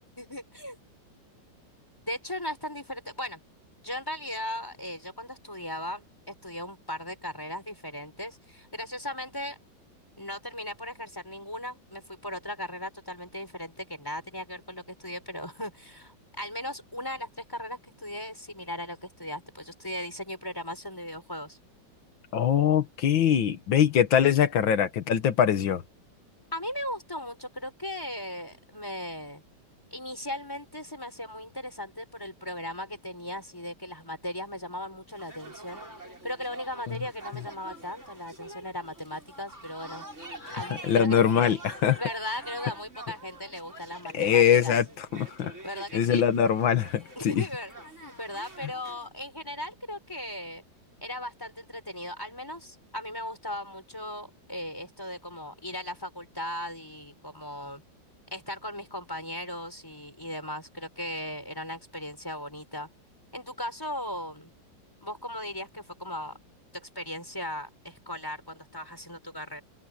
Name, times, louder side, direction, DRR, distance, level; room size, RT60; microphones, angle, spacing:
voice 1, 0.2-0.8 2.1-3.4 3.8-9.6 10.2-21.6 26.5-29.4 29.9-35.9 36.2-40.1 40.5-41.2 42.0-44.8 45.5-46.3 47.2-47.7 48.0-50.6 51.0-57.8 58.3-62.9 63.3-64.5 65.0-66.4 66.7-69.6, left 1 dB, 10° left, 6.2 m, -37 dB
voice 2, 22.3-25.8 40.4-40.6 40.9-42.0 44.1-45.5 45.9-47.5, left 9 dB, 85° left, 2.0 m, -23 dB
sound 1, 35.1-49.1, right 2 dB, 35° right, 8.0 m, -46 dB
open air
omnidirectional pair, 2.0 m